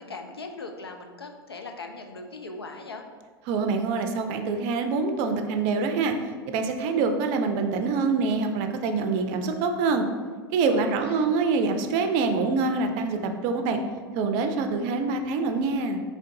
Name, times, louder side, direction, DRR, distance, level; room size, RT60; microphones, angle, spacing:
voice 1, 0.0-3.0 10.7-11.3, left 3 dB, 90° left, 4 dB, 0.4 m, -40 dB
voice 2, 3.5-6.1 6.5-10.1 10.5-13.8 14.1-16.0, right 4 dB, 45° right, 6 dB, 0.4 m, -25 dB
3.7 x 3.3 x 2.6 m, 1.5 s
figure-of-eight pair, 90°, 12 cm